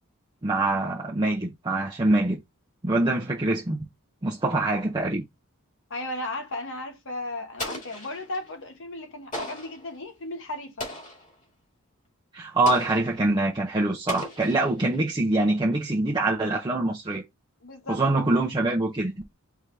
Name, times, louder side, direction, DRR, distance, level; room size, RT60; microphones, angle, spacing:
voice 1, 0.4-2.4 2.8-3.9 4.2-5.2 12.3-17.2 17.9-19.1, right 2 dB, 20° right, 0.7 m, -24 dB
voice 2, 5.9-10.9 17.6-18.0, left 1 dB, 60° left, 1.3 m, -35 dB
Explosion, 7.6-8.5 9.3-9.9 10.8-11.3 12.7-13.2 14.1-15.0, left 1 dB, 35° left, 2.0 m, -37 dB
4.7 x 3.6 x 2.7 m
head